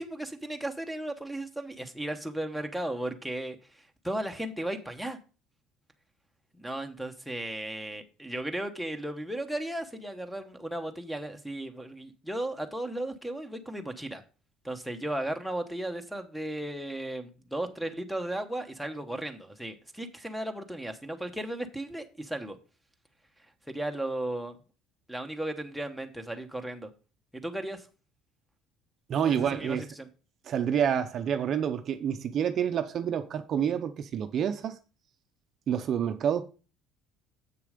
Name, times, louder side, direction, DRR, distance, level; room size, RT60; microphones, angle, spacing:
voice 1, 0.0-5.2 6.6-14.2 14.6-22.6 23.7-24.6 25.1-26.9 27.3-27.9 29.2-30.1, right 1 dB, ahead, 1.0 m, -35 dB
voice 2, 29.1-29.9 30.5-34.8 35.7-36.4, right 8 dB, 45° right, 0.7 m, -28 dB
7.6 x 6.7 x 5.1 m
cardioid pair, 135°, 0 cm